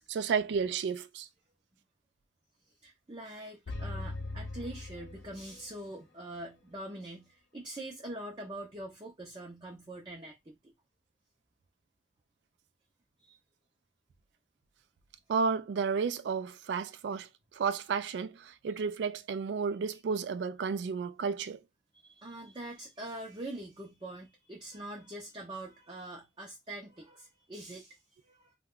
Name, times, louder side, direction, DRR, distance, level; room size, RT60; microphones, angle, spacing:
voice 1, 0.1-1.3 15.3-17.3 17.5-21.6, right 5 dB, 85° right, 0.3 m, -32 dB
voice 2, 2.8-10.7 13.2-13.4 21.9-28.5, right 1 dB, 25° right, 0.5 m, -44 dB
sound 1, 3.7-5.8, left 2 dB, 85° left, 0.6 m, -40 dB
2.3 x 2.1 x 3.6 m
head